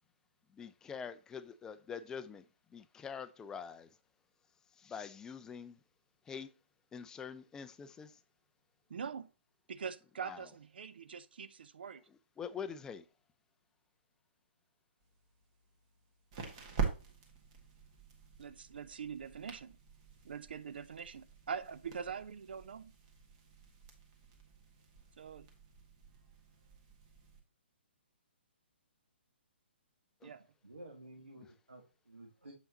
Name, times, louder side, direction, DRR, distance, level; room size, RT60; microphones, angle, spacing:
voice 1, 0.5-2.4 2.7-3.9 4.8-5.8 6.3-6.5 6.9-8.2 10.2-10.4 12.4-13.0 30.2-30.3, left 6 dB, 10° left, 0.4 m, -45 dB
voice 2, 8.9-9.3 9.7-12.0 18.4-19.8 20.2-22.9 25.2-25.5 30.2-30.4, right 6 dB, 60° right, 0.4 m, -43 dB
sound 1, 15.0-27.4, right 6 dB, 35° right, 1.6 m, -45 dB
voice 3, 30.6-32.5, right 1 dB, 80° right, 1.5 m, -53 dB
7.4 x 5.5 x 2.8 m
figure-of-eight pair, 130°, 6 cm